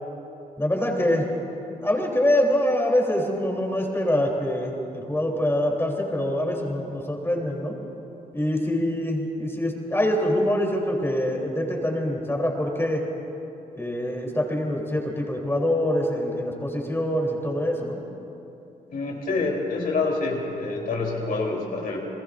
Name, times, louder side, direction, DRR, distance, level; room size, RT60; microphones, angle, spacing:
voice 1, 0.6-1.3 1.8-7.7 8.3-13.0 13.7-18.0, left 1 dB, 15° left, -1 dB, 3.2 m, -25 dB
voice 2, 18.9-22.0, left 3 dB, 70° left, -1 dB, 3.3 m, -27 dB
28.0 x 20.5 x 2.5 m, 2.9 s
cardioid pair, 60°, 16 cm